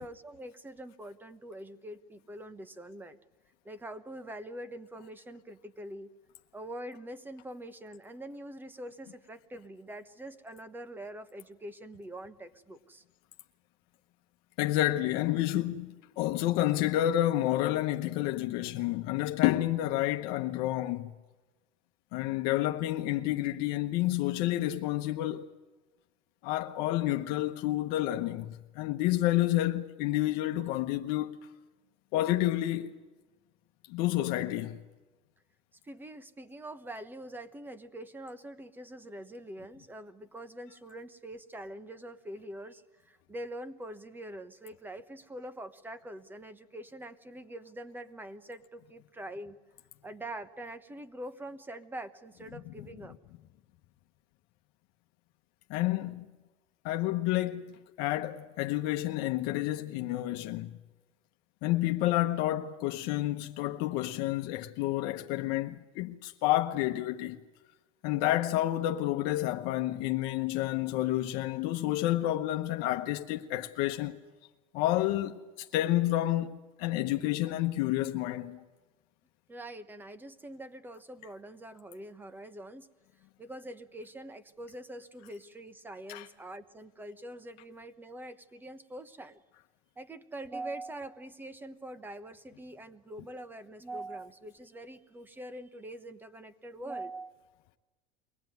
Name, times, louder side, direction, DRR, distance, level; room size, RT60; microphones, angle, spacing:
voice 1, 0.0-3.2 3.6-6.1 6.5-13.0 35.8-49.6 50.0-53.2 79.5-82.9 83.4-89.4 90.0-97.3, right 1 dB, 10° right, 1.1 m, -44 dB
voice 2, 14.6-21.1 22.1-25.5 26.4-31.4 32.1-33.0 33.9-34.8 55.7-56.2 56.8-60.7 61.6-67.4 68.0-74.2 74.7-76.5 76.8-78.6 86.1-86.3, left 15 dB, 65° left, 1.0 m, -29 dB
23.5 x 18.0 x 9.4 m
cardioid pair, 135°, 17 cm